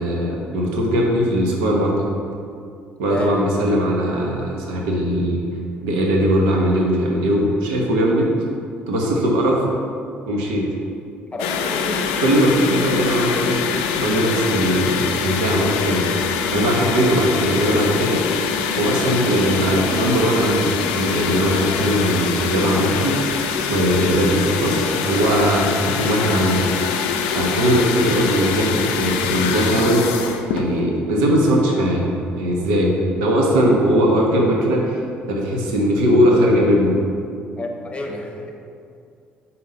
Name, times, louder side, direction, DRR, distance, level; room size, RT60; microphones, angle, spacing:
voice 1, 0.0-2.1 3.0-5.4 5.8-8.3 8.9-9.6 10.3-10.7 12.2-13.6 13.9-16.1 16.5-18.2 18.7-23.3 23.7-26.6 27.3-30.2 30.5-32.1 32.3-35.0 35.3-37.0, equal, 80° right, -1 dB, 1.0 m, -19 dB
voice 2, 3.1-3.4 11.3-12.1 37.6-38.5, left 2 dB, 20° left, 2 dB, 1.1 m, -29 dB
sound 1, 11.4-30.7, left 6 dB, 80° left, 0.4 m, -24 dB
5.5 x 4.2 x 5.3 m, 2.4 s
hypercardioid pair, 50°, 5 cm